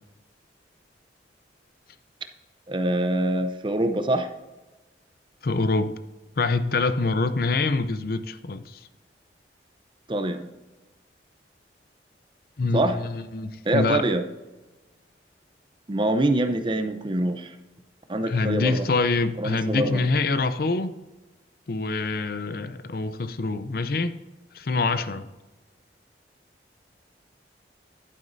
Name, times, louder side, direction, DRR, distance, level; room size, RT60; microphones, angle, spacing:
voice 1, 2.7-4.3 10.1-10.5 12.7-13.0 13.6-14.2 15.9-17.5 18.1-18.9 19.4-20.0, right 1 dB, 25° right, 8 dB, 0.6 m, -24 dB
voice 2, 5.4-6.0 6.4-8.9 12.6-14.0 18.3-20.9 21.7-24.2 24.5-25.3, left 3 dB, 55° left, 12 dB, 0.5 m, -25 dB
11.0 x 9.2 x 2.6 m, 1.1 s
head